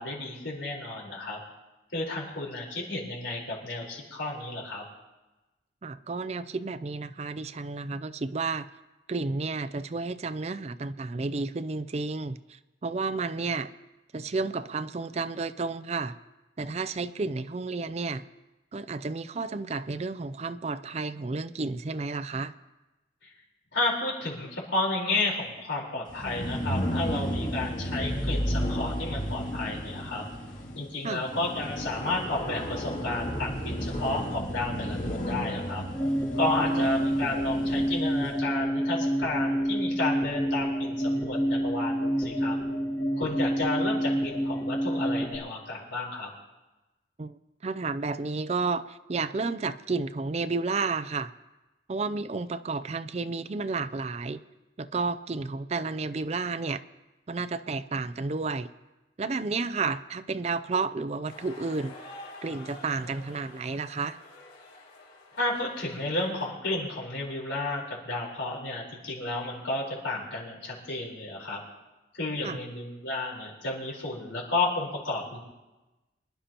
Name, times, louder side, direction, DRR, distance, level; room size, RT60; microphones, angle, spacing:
voice 1, 0.0-1.4 1.9-4.8 23.2-23.3 23.7-30.2 30.7-35.8 36.3-42.6 43.2-46.3 65.3-71.6 72.1-75.4, left 2 dB, 90° left, -2 dB, 4.2 m, -32 dB
voice 2, 5.8-8.7 9.1-13.7 14.1-16.2 16.6-18.2 18.7-22.5 31.0-31.2 36.6-36.9 47.2-51.3 51.9-54.4 54.8-56.8 57.3-58.7 59.2-62.0 62.4-64.2 72.4-72.6, right 4 dB, 35° right, 12 dB, 0.4 m, -31 dB
sound 1, 26.1-38.1, equal, 40° left, 2.0 m, -33 dB
sound 2, 35.9-45.4, equal, 15° left, 1.2 m, -28 dB
sound 3, 61.3-66.5, left 2 dB, 60° left, 4.3 m, -48 dB
25.5 x 11.5 x 2.9 m, 1.1 s
head